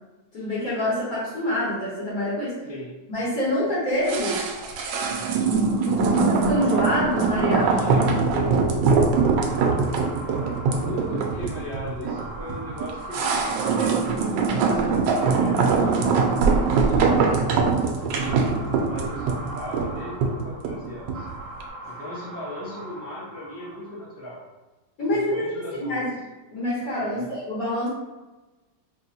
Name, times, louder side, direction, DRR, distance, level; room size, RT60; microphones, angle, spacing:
voice 1, 0.3-2.5 3.1-4.4 5.9-7.6 25.0-26.1 26.5-27.9, left 1 dB, 55° left, -9 dB, 1.6 m, -26 dB
sound 1, 4.1-21.3 21.6-21.7, right 4 dB, 85° right, 1.2 m, -22 dB
sound 2, 5.3-24.2, right 1 dB, 60° right, 1.0 m, -40 dB
voice 2, 7.4-9.1 10.7-17.8 18.1-18.3 18.8-21.3 21.9-24.4 25.1-26.1 27.0-27.3, left 1 dB, 25° right, -7 dB, 0.3 m, -37 dB
5.1 x 2.7 x 2.7 m, 1.2 s
omnidirectional pair, 1.9 m